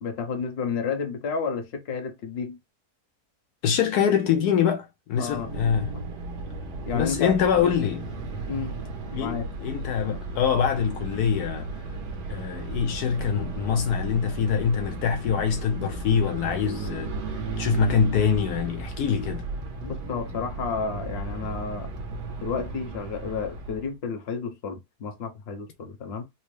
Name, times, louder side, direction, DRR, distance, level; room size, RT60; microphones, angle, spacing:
voice 1, 0.0-2.6 5.2-5.5 6.8-7.4 8.5-8.8 9.1-9.5 19.8-21.9 22.4-26.2, left 5 dB, 50° left, 0.9 m, -31 dB
voice 2, 3.6-5.9 6.9-8.1 9.1-11.7 12.3-17.1 17.6-19.5, left 7 dB, 75° left, 1.0 m, -24 dB
sound 1, 5.2-23.9, right 3 dB, 85° right, 1.5 m, -35 dB
4.2 x 2.0 x 3.1 m
omnidirectional pair, 1.7 m